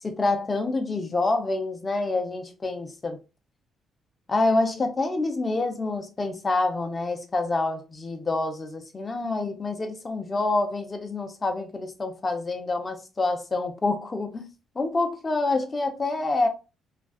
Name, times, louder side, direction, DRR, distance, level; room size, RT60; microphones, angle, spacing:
voice 1, 0.0-3.2 4.3-14.5 14.8-16.5, left 2 dB, 30° left, 0.6 m, -27 dB
2.4 x 2.2 x 2.4 m
cardioid pair, 90°, 0 cm